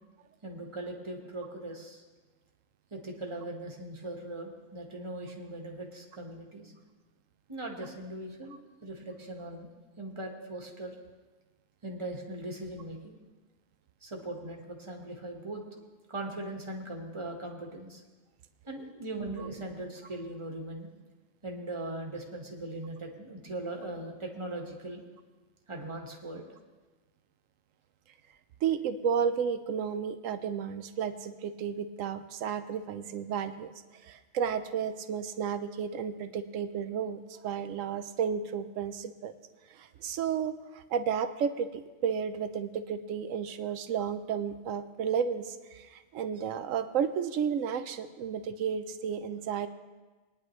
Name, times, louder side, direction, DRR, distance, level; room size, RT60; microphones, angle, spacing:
voice 1, 0.4-2.0 2.9-6.7 7.5-8.6 8.8-9.7 10.0-10.9 11.8-13.2 14.0-15.6 16.1-18.0 18.6-20.9 21.4-25.0 25.7-26.5, right 2 dB, 25° right, 1 dB, 1.5 m, -39 dB
voice 2, 28.6-33.7 34.0-39.3 39.7-49.7, right 7 dB, 85° right, 10 dB, 1.1 m, -32 dB
21.5 x 10.0 x 3.1 m, 1.3 s
omnidirectional pair, 1.3 m